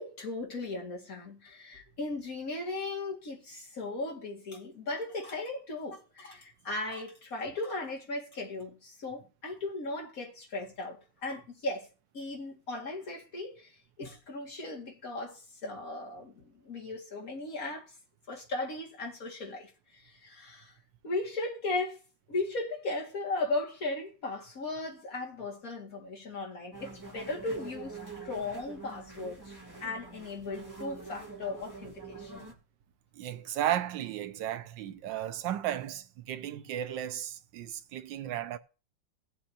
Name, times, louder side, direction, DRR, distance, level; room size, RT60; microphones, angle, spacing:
voice 1, 0.0-11.9 12.1-13.7 14.0-17.9 18.3-20.7 21.0-22.0 22.3-29.5 29.8-32.5, left 2 dB, 50° left, 2.6 m, -37 dB
sound 1, 26.7-32.5, right 4 dB, 10° right, 1.9 m, -45 dB
voice 2, 33.1-38.6, right 11 dB, 80° right, 1.4 m, -34 dB
16.5 x 7.9 x 2.9 m
omnidirectional pair, 2.0 m